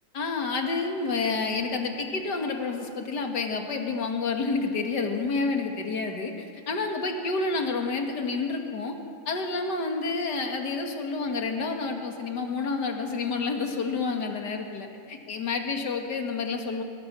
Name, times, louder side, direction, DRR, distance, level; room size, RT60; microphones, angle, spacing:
voice 1, 0.1-9.0 9.3-16.8, left 4 dB, 40° left, 3 dB, 2.0 m, -29 dB
24.0 x 20.0 x 6.2 m, 2.5 s
omnidirectional pair, 3.5 m